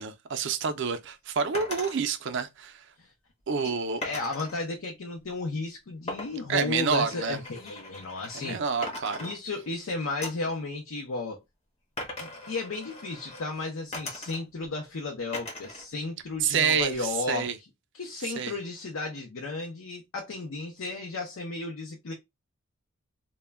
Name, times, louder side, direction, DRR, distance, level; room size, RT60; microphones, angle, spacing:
voice 1, 0.0-2.8 3.5-4.0 6.5-7.4 8.3-9.3 16.4-17.5 18.4-18.5, right 6 dB, 55° right, 0.4 m, -28 dB
sound 1, 1.5-2.0 4.0-4.6 6.1-8.6 8.8-9.8 10.2-10.5 12.0-13.5 13.9-14.7 15.3-15.9 16.2-17.0, left 2 dB, 30° left, 0.7 m, -40 dB
voice 2, 3.6-8.6 9.2-11.4 12.2-17.5 17.9-22.1, left 3 dB, 70° left, 0.5 m, -34 dB
2.1 x 2.1 x 3.3 m
head